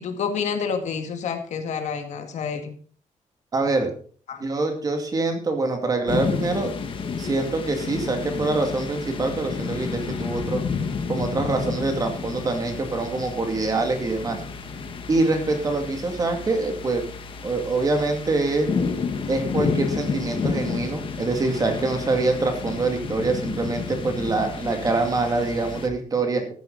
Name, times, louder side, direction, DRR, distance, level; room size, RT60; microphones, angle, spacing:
voice 1, 0.0-2.7 4.3-4.4, left 6 dB, 65° left, 6 dB, 2.1 m, -28 dB
voice 2, 3.5-3.9 4.4-6.7 7.2-10.6 11.1-14.4 15.1-17.0 17.4-18.7 19.3-26.5, right 3 dB, 30° right, 4 dB, 2.4 m, -25 dB
sound 1, 6.1-25.9, left 5 dB, 40° left, 1.7 m, -31 dB
13.5 x 10.0 x 4.0 m, 0.43 s
wide cardioid pair, 170°, 13 cm